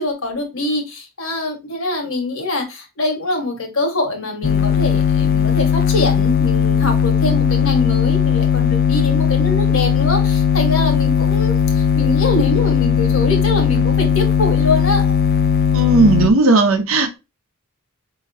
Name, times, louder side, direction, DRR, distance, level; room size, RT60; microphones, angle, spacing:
voice 1, 0.0-15.1, left 2 dB, 65° left, 1.3 m, -23 dB
sound 1, 4.4-16.3, left 7 dB, 45° left, 0.3 m, -17 dB
voice 2, 15.7-17.2, right 3 dB, 65° right, 0.7 m, -15 dB
5.2 x 2.8 x 2.6 m
head